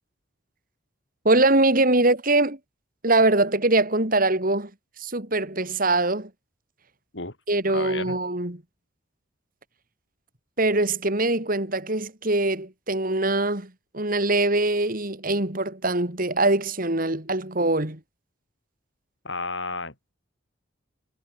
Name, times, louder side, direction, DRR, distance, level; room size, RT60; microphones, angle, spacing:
voice 1, 1.3-2.6 3.0-4.7 5.0-6.3 7.5-8.6 10.6-18.0, right 2 dB, 45° right, 3.6 m, -23 dB
voice 2, 7.7-8.2 19.2-19.9, left 3 dB, 70° left, 5.2 m, -32 dB
head